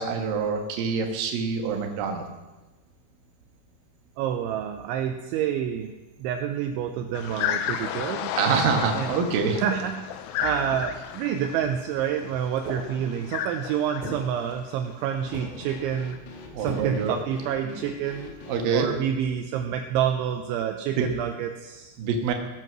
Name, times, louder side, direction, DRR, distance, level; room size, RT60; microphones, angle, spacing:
voice 1, 0.0-2.2 8.4-9.6 16.5-17.2 17.6-17.8 18.5-18.9 21.0-21.1 22.0-22.3, right 5 dB, 65° right, 2 dB, 2.4 m, -25 dB
voice 2, 4.2-5.9 6.2-8.3 8.9-9.1 9.6-10.0 10.4-16.2 16.6-18.3 18.7-21.9, right 9 dB, 80° right, 6 dB, 2.8 m, -28 dB
sound 1, 7.1-15.4 15.7-16.2, left 10 dB, 80° left, 3.2 m, -33 dB
sound 2, 10.4-11.0 15.3-18.7, left 4 dB, 65° left, 3.2 m, -43 dB
sound 3, 12.6-13.4 14.0-15.1 15.3-15.9 16.7-17.2, right 1 dB, 35° right, 1.8 m, -38 dB
18.0 x 7.8 x 6.1 m, 1.1 s
omnidirectional pair, 5.9 m